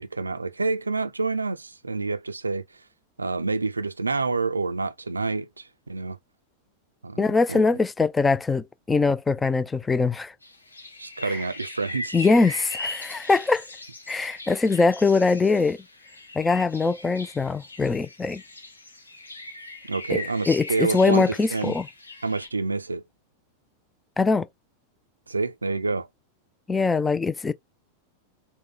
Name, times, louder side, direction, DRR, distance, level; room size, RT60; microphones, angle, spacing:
voice 1, 0.0-2.8 3.2-6.2 7.0-7.6 11.0-12.1 19.8-21.7 22.2-23.0 25.3-26.1, right 3 dB, 80° right, 0.4 m, -28 dB
voice 2, 7.2-10.3 11.2-11.4 12.1-13.6 14.1-15.8 16.3-18.4 20.1-20.2 20.5-21.9 24.2-24.5 26.7-27.5, left 4 dB, 15° left, 0.4 m, -22 dB
sound 1, 10.4-22.5, left 2 dB, 80° left, 0.8 m, -40 dB
3.7 x 2.1 x 3.9 m
figure-of-eight pair, 90°, 0 cm